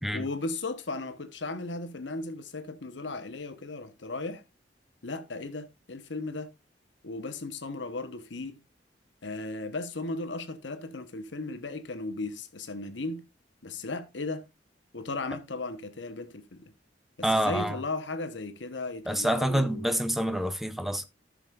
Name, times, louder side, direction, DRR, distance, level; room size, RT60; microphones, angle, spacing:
voice 1, 0.1-4.4 5.0-6.5 7.0-8.6 9.2-13.3 13.6-14.4 14.9-16.7 17.2-19.9, left 3 dB, 90° left, 1.1 m, -36 dB
voice 2, 17.2-17.8 19.1-21.0, right 1 dB, ahead, 0.7 m, -27 dB
14.0 x 6.4 x 2.5 m
head